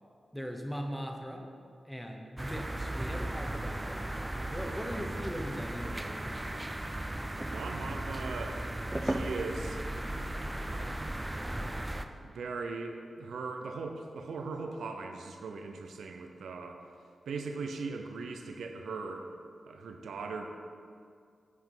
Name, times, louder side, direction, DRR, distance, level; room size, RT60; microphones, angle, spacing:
voice 1, 0.3-1.5 1.8-6.5, equal, 5° left, 2 dB, 0.9 m, -40 dB
sound 1, 2.4-12.1, right 1 dB, 15° right, 0.4 m, -36 dB
voice 2, 7.3-8.7 9.0-9.8 10.7-11.1 11.6-11.7 12.2-16.8 17.3-19.3 19.7-20.5, right 4 dB, 90° right, 4 dB, 0.6 m, -39 dB
8.0 x 4.8 x 3.8 m, 2.3 s
cardioid pair, 60°, 0 cm